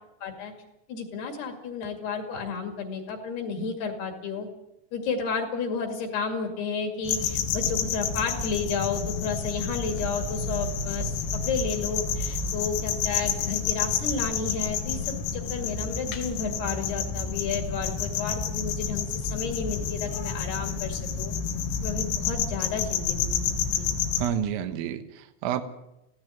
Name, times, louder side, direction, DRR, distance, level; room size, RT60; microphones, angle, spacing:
voice 1, 0.2-0.5 0.9-4.5 4.9-21.3 21.8-23.9, left 5 dB, 55° left, 4 dB, 3.9 m, -32 dB
sound 1, 7.0-24.3, left 6 dB, 75° left, 4.4 m, -29 dB
voice 2, 24.2-25.6, right 9 dB, 80° right, 9 dB, 3.8 m, -29 dB
17.5 x 16.0 x 9.1 m, 0.90 s
omnidirectional pair, 5.8 m